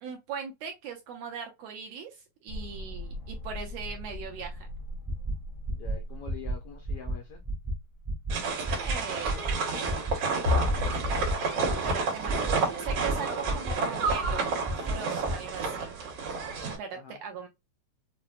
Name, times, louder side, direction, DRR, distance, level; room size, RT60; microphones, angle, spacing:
voice 1, 0.0-4.7 8.5-9.5 11.8-15.9 16.8-17.5, right 6 dB, 80° right, 1.5 m, -40 dB
sound 1, 2.5-8.0 10.5-11.3, left 3 dB, 65° left, 1.0 m, -35 dB
sound 2, 5.0-5.3 5.6-5.9 6.3-6.5 6.8-7.1 7.4-7.7 8.0-8.3 8.6-8.9 9.2-9.5 9.8-10.1 10.4-10.7 11.0-11.3 11.6-11.9 12.3-12.5 12.9-13.1 13.4-13.7 14.0-14.3 14.6-14.9 15.2-15.3, right 3 dB, 20° right, 0.7 m, -31 dB
voice 2, 5.8-7.4 16.9-17.2, left 6 dB, 80° left, 1.3 m, -45 dB
sound 3, 8.3-16.8, right 4 dB, 60° right, 2.2 m, -30 dB
5.7 x 2.0 x 2.4 m
omnidirectional pair, 3.4 m